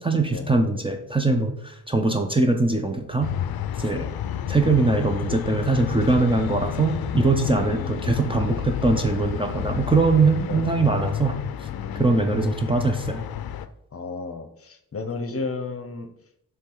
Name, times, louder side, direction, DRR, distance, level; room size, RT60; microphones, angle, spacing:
voice 1, 0.0-3.3 3.8-4.1 4.5-11.3 12.0-13.2, right 3 dB, 15° right, 4 dB, 0.6 m, -22 dB
sound 1, 3.2-13.7, left 9 dB, 90° left, 0.5 m, -30 dB
voice 2, 7.6-8.1 10.5-10.7 11.7-12.4 13.9-16.1, left 3 dB, 40° left, 7 dB, 0.7 m, -34 dB
7.3 x 3.3 x 3.8 m, 0.75 s
wide cardioid pair, 110°, 35 cm